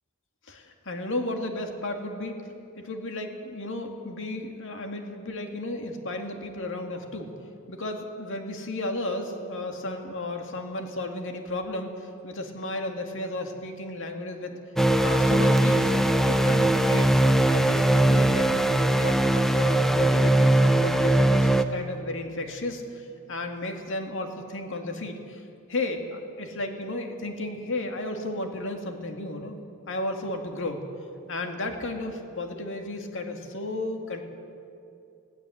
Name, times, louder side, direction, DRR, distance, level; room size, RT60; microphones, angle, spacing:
voice 1, 0.5-2.4 2.8-7.3 7.7-14.6 15.0-15.9 16.3-17.2 17.5-18.5 18.8-25.4 25.7-29.6 29.9-30.8 31.3-34.2, left 2 dB, 60° left, 4 dB, 2.2 m, -33 dB
sound 1, 14.8-21.6, right 1 dB, ahead, 0.7 m, -20 dB
20.0 x 16.5 x 8.0 m, 2.6 s
head